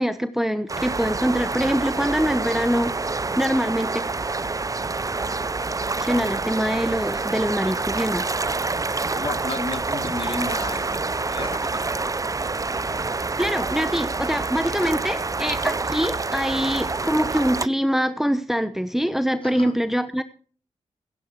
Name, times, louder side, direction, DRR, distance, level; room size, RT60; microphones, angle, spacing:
voice 1, 0.0-2.9 3.4-4.0 6.0-8.3 13.4-20.2, equal, 5° right, 12 dB, 1.0 m, -24 dB
sound 1, 0.7-17.7, right 3 dB, 25° right, 0.5 m, -27 dB
voice 2, 9.1-12.1 19.4-19.7, left 3 dB, 45° left, 6 dB, 3.0 m, -33 dB
16.0 x 10.0 x 4.6 m, 0.42 s
supercardioid pair, 40°, 12 cm